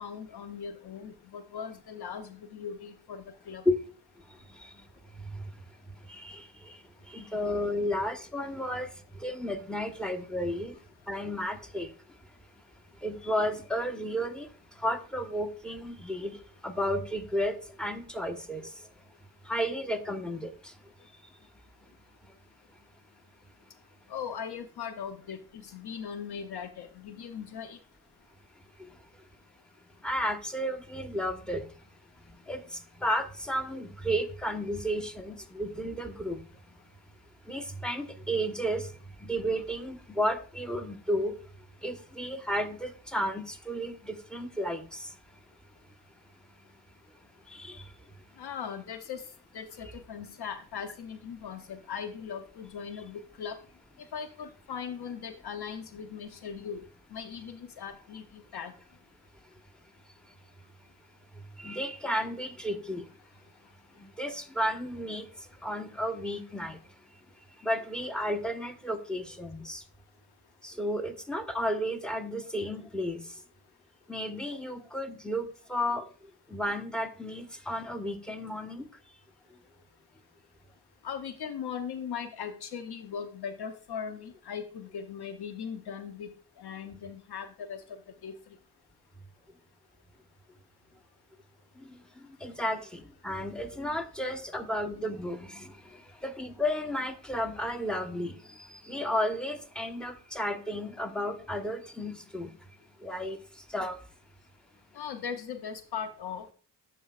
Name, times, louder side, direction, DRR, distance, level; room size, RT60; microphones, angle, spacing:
voice 1, 0.0-3.6 24.1-27.8 48.4-49.3 49.5-53.6 54.1-56.8 57.1-58.7 81.0-86.3 86.6-87.8 88.2-88.4 104.9-106.5, left 7 dB, 60° left, 9 dB, 0.8 m, -39 dB
voice 2, 4.5-4.8 5.3-5.4 6.1-6.8 7.1-8.9 9.1-10.8 11.1-11.9 13.0-14.5 14.8-18.6 19.5-20.7 30.0-31.6 32.4-36.4 37.5-38.9 39.2-41.3 41.8-45.1 47.5-47.9 49.8-49.9 61.6-63.1 64.0-65.3 65.6-66.8 67.6-69.8 70.6-73.2 74.1-76.1 76.5-78.9 91.8-92.0 92.4-102.5 103.0-103.4 103.7-104.0, equal, ahead, 6 dB, 1.1 m, -33 dB
12.5 x 4.6 x 2.4 m, 0.39 s
cardioid pair, 60°, 44 cm